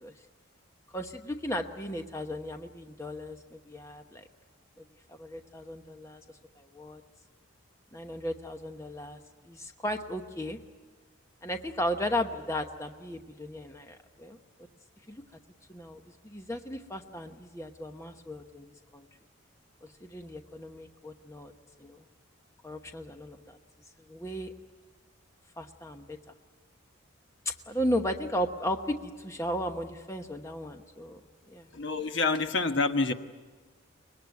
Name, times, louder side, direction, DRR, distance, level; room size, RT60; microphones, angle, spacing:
voice 1, 0.9-4.2 4.8-4.9 5.1-6.2 6.6-7.0 7.9-9.2 9.4-10.6 11.4-14.4 15.1-15.2 15.7-18.7 18.9-19.1 19.8-21.5 21.8-22.0 22.6-23.6 24.1-24.5 25.6-26.2 27.4-31.2 31.5-31.7, equal, 15° left, 5 dB, 1.0 m, -35 dB
voice 2, 31.7-33.1, left 3 dB, 60° left, 7 dB, 1.2 m, -27 dB
23.5 x 21.0 x 9.5 m, 1.4 s
head